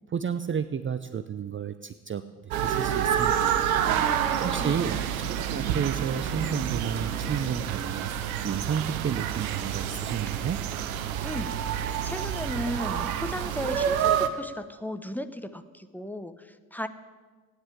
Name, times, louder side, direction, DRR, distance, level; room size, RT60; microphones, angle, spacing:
voice 1, 0.1-3.6 4.4-10.6, right 7 dB, 30° right, 12 dB, 0.7 m, -32 dB
sound 1, 2.5-14.3, right 9 dB, 80° right, 0.9 m, -28 dB
voice 2, 3.9-4.7 11.2-16.9, left 1 dB, 5° left, 10 dB, 1.1 m, -36 dB
15.5 x 10.0 x 8.5 m, 1.4 s
figure-of-eight pair, 40°, 42 cm